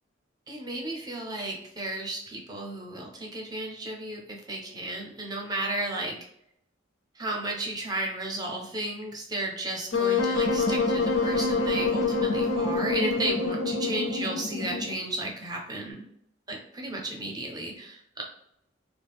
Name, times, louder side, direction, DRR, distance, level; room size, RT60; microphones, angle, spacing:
voice 1, 0.5-6.1 7.2-16.1 16.5-18.2, right 1 dB, 20° right, 0 dB, 0.5 m, -34 dB
Wind instrument woodwind instrument, 9.9-15.0, left 3 dB, 80° left, 0.5 m, -26 dB
3.1 x 2.0 x 3.3 m, 0.74 s
head